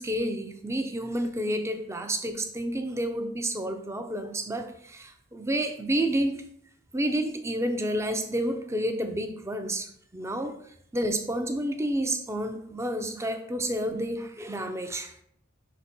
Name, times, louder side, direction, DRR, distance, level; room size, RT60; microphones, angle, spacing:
voice 1, 0.0-6.4 6.9-15.2, right 1 dB, 15° right, 7 dB, 0.6 m, -30 dB
5.4 x 4.1 x 5.9 m, 0.68 s
head